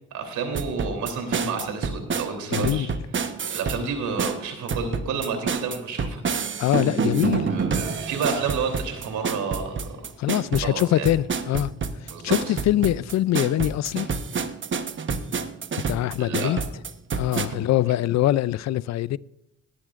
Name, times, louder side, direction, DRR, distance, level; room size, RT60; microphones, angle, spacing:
voice 1, 0.1-2.9 3.5-6.2 7.5-9.8 10.6-11.1 12.1-12.4 16.2-16.5, right 5 dB, 80° right, 3.3 m, -30 dB
sound 1, 0.5-3.8 4.2-17.5, right 5 dB, 40° right, 1.1 m, -28 dB
voice 2, 2.5-2.9 6.6-7.6 10.2-11.7 12.0-14.1 15.9-16.6 17.1-19.2, left 13 dB, 60° left, 0.5 m, -23 dB
18.0 x 11.0 x 2.5 m
cardioid pair, 90°, 30 cm